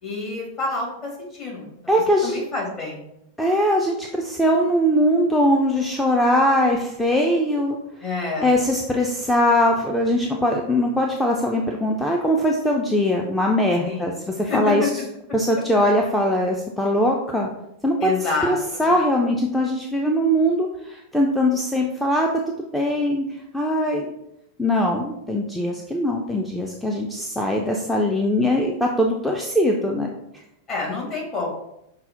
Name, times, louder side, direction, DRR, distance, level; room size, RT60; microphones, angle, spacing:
voice 1, 0.0-1.1 1.4-3.0 8.0-8.6 13.8-14.9 18.0-18.9 30.7-31.5, left 3 dB, 35° left, -3 dB, 1.6 m, -28 dB
voice 2, 1.9-2.4 3.4-7.8 8.4-14.9 15.3-17.5 17.8-18.1 18.5-22.3 22.7-23.2 23.5-24.1 24.6-30.4, equal, 5° left, 0 dB, 0.4 m, -21 dB
5.5 x 2.1 x 3.7 m, 0.82 s
figure-of-eight pair, 90°, 0 cm